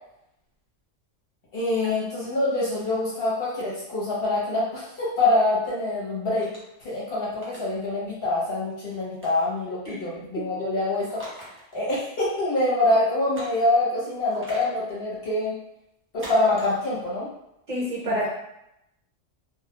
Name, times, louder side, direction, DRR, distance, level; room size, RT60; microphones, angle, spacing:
voice 1, 1.5-6.5 6.8-15.6 16.1-17.3 18.0-18.1, left 2 dB, 55° left, -7 dB, 0.8 m, -25 dB
sound 1, 6.4-6.8 7.3-7.6 9.2-9.5 11.1-11.7 12.0-12.1 13.3-13.7 14.3-14.8 16.2-16.8, equal, 20° right, 0.4 m, -41 dB
voice 2, 17.7-18.3, equal, 45° right, -6 dB, 1.0 m, -27 dB
2.2 x 2.0 x 2.8 m, 0.83 s
omnidirectional pair, 1.2 m